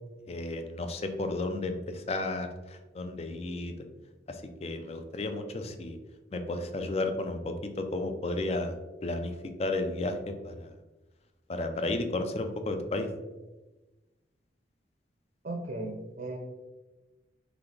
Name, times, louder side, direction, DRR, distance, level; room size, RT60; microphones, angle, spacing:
voice 1, 0.3-3.7 4.3-6.0 6.3-8.8 9.0-10.7 11.5-13.1, left 2 dB, 35° left, 7 dB, 0.4 m, -33 dB
voice 2, 15.4-16.4, right 2 dB, 50° right, 1 dB, 0.6 m, -36 dB
4.1 x 3.3 x 3.3 m, 1.1 s
head